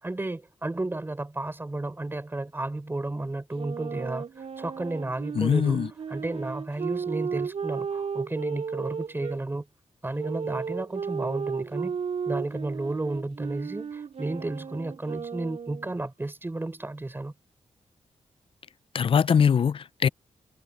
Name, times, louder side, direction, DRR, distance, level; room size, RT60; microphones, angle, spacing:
voice 1, 0.0-4.2 4.6-5.8 6.1-9.7 10.0-12.0 12.3-17.3, right 2 dB, 20° right, 4.3 m, -32 dB
Wind instrument woodwind instrument, 3.5-9.4 10.2-15.9, right 6 dB, 65° right, 3.4 m, -34 dB
voice 2, 5.4-5.9 18.9-20.1, left 7 dB, 50° left, 0.4 m, -22 dB
cardioid pair, 100°, 12 cm